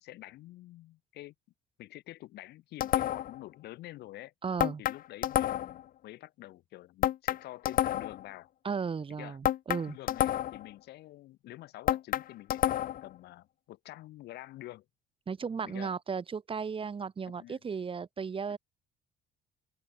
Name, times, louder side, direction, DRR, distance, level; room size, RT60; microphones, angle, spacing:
voice 1, 0.0-1.3 1.8-4.3 4.8-8.5 9.1-9.4 9.9-14.8 15.6-15.9 17.4-17.6 18.5-18.6, left 16 dB, 80° left, 4.3 m, -48 dB
sound 1, 2.8-3.4 4.6-5.8 7.0-8.2 9.4-10.7 11.9-13.1, left 12 dB, 55° left, 0.8 m, -29 dB
voice 2, 4.4-4.8 8.6-10.0 15.3-18.6, right 5 dB, 30° right, 4.3 m, -35 dB
open air
cardioid pair, 110°, 17 cm